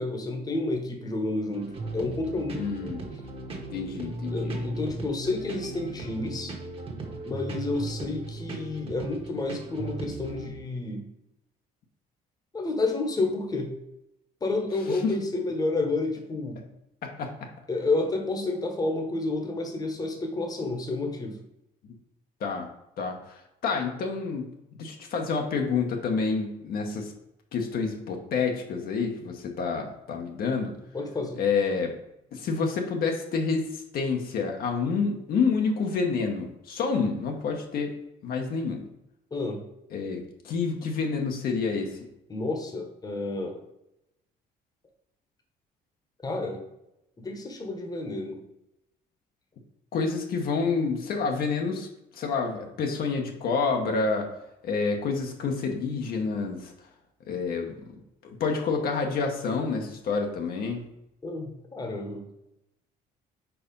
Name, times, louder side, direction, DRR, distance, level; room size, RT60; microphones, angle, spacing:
voice 1, 0.0-2.6 4.3-6.5 7.2-11.1 12.5-13.7 14.4-16.6 17.7-21.4 30.9-31.4 39.3-39.6 42.3-43.6 46.2-46.6 47.2-48.4 61.2-62.2, left 2 dB, 20° left, 4 dB, 1.1 m, -30 dB
sound 1, 1.5-10.5, right 2 dB, 35° right, 1.3 m, -37 dB
voice 2, 2.5-3.0 3.7-4.7 14.9-15.1 17.0-17.5 22.4-22.7 23.0-24.4 24.7-27.1 27.5-30.7 31.4-31.9 32.3-38.0 38.2-38.8 39.9-42.0 49.9-51.9 52.1-54.3 54.6-56.7 57.3-57.8 58.2-60.8, left 4 dB, 60° left, 2 dB, 1.0 m, -28 dB
4.7 x 4.2 x 5.2 m, 0.86 s
cardioid pair, 110°, 17 cm